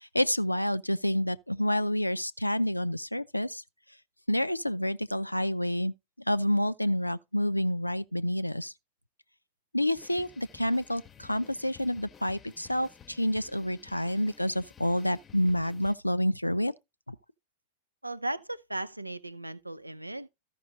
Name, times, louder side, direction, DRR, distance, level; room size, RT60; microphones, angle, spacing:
voice 1, 0.0-3.6 4.3-5.9 6.3-8.7 9.7-16.7 17.1-17.2, left 1 dB, 85° left, 0.4 m, -28 dB
sound 1, 9.9-16.0, left 7 dB, 25° left, 0.8 m, -54 dB
voice 2, 18.0-20.3, right 1 dB, 85° right, 0.5 m, -36 dB
13.5 x 5.7 x 3.8 m
figure-of-eight pair, 90°, 0 cm